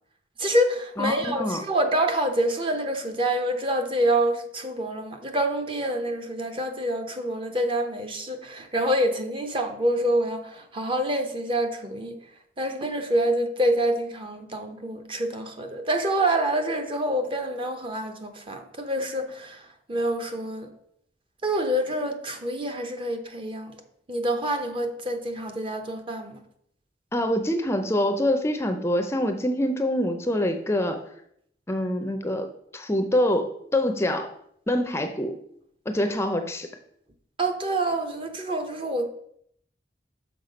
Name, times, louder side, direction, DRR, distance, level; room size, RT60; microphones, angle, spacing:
voice 1, 0.4-12.2 12.6-19.6 19.9-20.7 21.4-23.7 24.1-26.4 37.4-39.1, right 1 dB, 30° right, 5 dB, 0.8 m, -26 dB
voice 2, 1.0-1.6 27.1-31.0 31.7-34.3 34.7-35.4 35.9-36.7, left 1 dB, 15° left, 6 dB, 0.5 m, -25 dB
6.3 x 5.8 x 5.1 m, 0.70 s
head